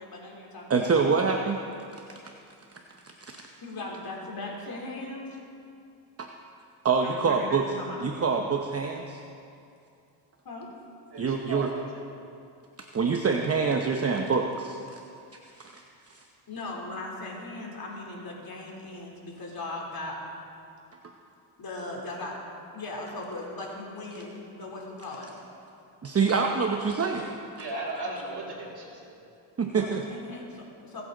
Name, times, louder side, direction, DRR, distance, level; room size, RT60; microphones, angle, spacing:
voice 1, 0.0-0.9 3.6-5.4 7.0-8.0 10.4-10.7 13.0-13.1 16.5-20.2 21.6-22.3 22.7-25.3 29.8-31.0, left 2 dB, 45° left, -2 dB, 3.4 m, -38 dB
voice 2, 0.7-1.6 2.1-2.2 3.0-3.5 6.2-6.3 6.8-7.6 8.0-9.2 11.2-11.7 12.8-14.8 15.6-15.8 16.1-16.2 26.0-27.6 29.6-30.0, right 5 dB, 30° right, 3 dB, 0.9 m, -26 dB
voice 3, 11.1-12.1 26.5-26.6 27.6-29.2, right 2 dB, 50° right, -3 dB, 3.4 m, -36 dB
19.5 x 8.3 x 3.9 m, 2.6 s
supercardioid pair, 65°, 48 cm